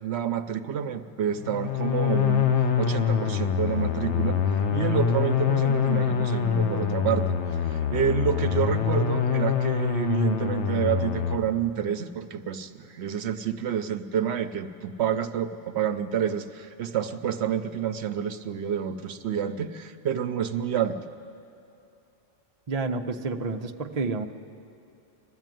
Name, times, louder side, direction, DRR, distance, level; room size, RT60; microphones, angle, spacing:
voice 1, 0.0-4.4 4.7-7.4 7.7-21.0, right 8 dB, 75° right, 10 dB, 0.9 m, -28 dB
sound 1, 1.4-11.4, left 7 dB, 85° left, 1.2 m, -25 dB
voice 2, 22.7-24.3, right 3 dB, 40° right, 4 dB, 0.7 m, -29 dB
21.0 x 13.5 x 9.1 m, 2.7 s
omnidirectional pair, 1.2 m